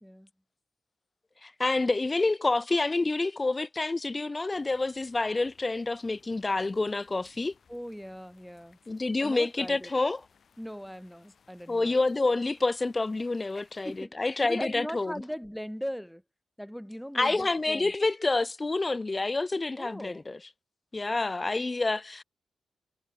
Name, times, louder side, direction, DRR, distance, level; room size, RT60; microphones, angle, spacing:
voice 1, 1.4-7.5 8.9-10.2 11.7-15.1 17.1-20.4 20.9-22.2, left 3 dB, 20° left, 0.5 m, -28 dB
sound 1, 4.5-14.0, left 6 dB, 50° left, 6.6 m, -64 dB
voice 2, 7.7-8.8 9.2-9.9 10.6-11.9 13.5-14.1 14.4-16.2 16.6-17.9 19.8-20.2, equal, ahead, 1.3 m, -39 dB
cardioid pair, 120°, 0 cm